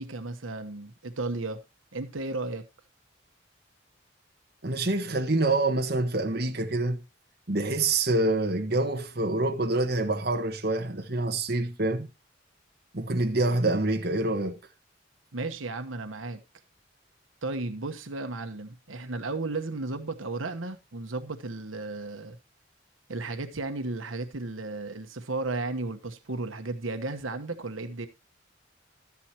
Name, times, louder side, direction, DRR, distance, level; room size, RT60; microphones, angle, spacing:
voice 1, 0.0-1.6 1.9-2.7 15.3-16.4 17.4-22.4 23.1-28.1, right 2 dB, 85° right, 1.2 m, -34 dB
voice 2, 4.6-7.0 7.5-12.1 12.9-14.6, right 2 dB, 50° right, 1.3 m, -26 dB
13.0 x 10.5 x 2.9 m
head